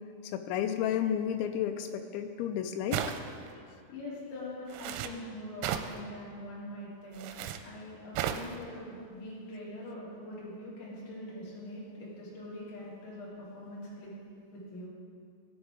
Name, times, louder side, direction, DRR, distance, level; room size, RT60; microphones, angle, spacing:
voice 1, 0.2-3.0, left 9 dB, 90° left, 6 dB, 2.6 m, -32 dB
sound 1, 2.9-3.5 4.7-5.1 5.6-6.0 7.1-7.6 8.1-8.5, right 10 dB, 90° right, 3.3 m, -34 dB
voice 2, 3.9-7.3 7.6-14.1 14.5-14.9, left 1 dB, 45° left, -7 dB, 3.6 m, -43 dB
17.0 x 7.9 x 3.7 m, 2.4 s
omnidirectional pair, 5.9 m